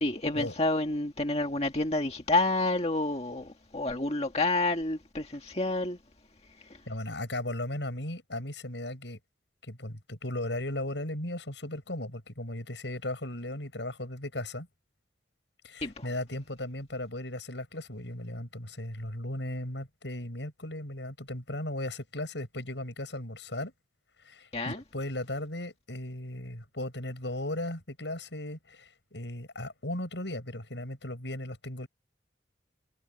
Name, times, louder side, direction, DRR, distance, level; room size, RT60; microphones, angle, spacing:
voice 1, 0.0-6.0 6.6-6.8 15.8-16.1 24.5-24.8, left 2 dB, 35° left, 1.9 m, -29 dB
voice 2, 6.9-9.2 9.6-14.7 15.6-23.7 24.2-31.9, left 1 dB, 80° left, 6.7 m, -36 dB
head